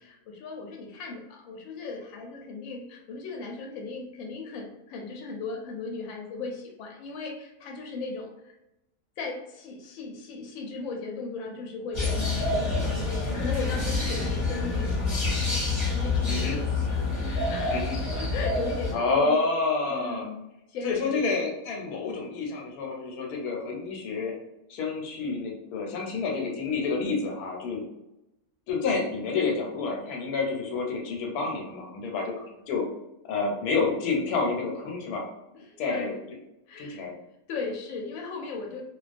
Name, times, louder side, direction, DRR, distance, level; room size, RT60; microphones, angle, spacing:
voice 1, 0.0-8.5 9.2-15.6 15.9-16.9 17.2-19.5 19.9-20.4 20.7-21.2 35.5-36.2 36.7-37.0 37.5-38.8, left 4 dB, 70° left, 1 dB, 0.9 m, -37 dB
sound 1, 11.9-18.9, left 3 dB, 35° left, 0.5 m, -27 dB
voice 2, 18.9-20.2 20.8-24.3 24.7-27.8 28.7-32.8 33.3-35.3 35.8-36.2 36.8-37.1, left 4 dB, 90° left, 0 dB, 1.1 m, -29 dB
2.3 x 2.3 x 2.4 m, 0.91 s
omnidirectional pair, 1.6 m